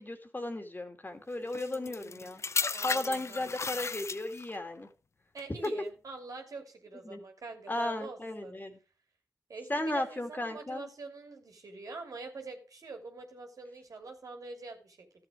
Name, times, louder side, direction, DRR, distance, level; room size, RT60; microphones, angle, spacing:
voice 1, 0.0-2.4 2.8-4.9 5.6-5.7 7.0-7.2 7.7-8.8 9.7-10.9, left 1 dB, 30° left, 6 dB, 2.4 m, -35 dB
sound 1, 1.5-4.6 5.4-5.7, left 4 dB, 50° left, 0.5 m, -35 dB
voice 2, 1.6-2.3 2.7-3.8 5.3-8.6 9.5-15.1, right 3 dB, 70° right, 4 dB, 2.7 m, -45 dB
12.5 x 7.8 x 5.0 m, 0.35 s
cardioid pair, 45°, 6 cm